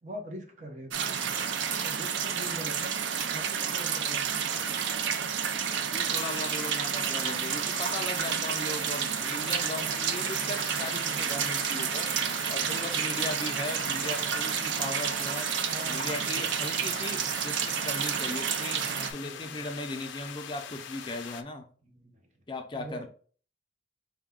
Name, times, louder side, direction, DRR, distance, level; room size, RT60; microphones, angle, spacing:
voice 1, 0.0-1.4 1.8-2.9 3.2-4.8 15.7-16.5 18.8-19.7 21.8-22.2 22.7-23.1, equal, 40° right, 3 dB, 0.8 m, -43 dB
sound 1, 0.9-19.1, right 7 dB, 85° right, 0.5 m, -30 dB
voice 2, 5.9-12.1 12.5-15.5 15.9-18.8 19.1-21.7 22.5-23.1, left 2 dB, 25° left, 4 dB, 0.5 m, -38 dB
sound 2, 6.1-21.4, left 8 dB, 85° left, 0.4 m, -43 dB
4.7 x 2.2 x 3.6 m, 0.42 s
head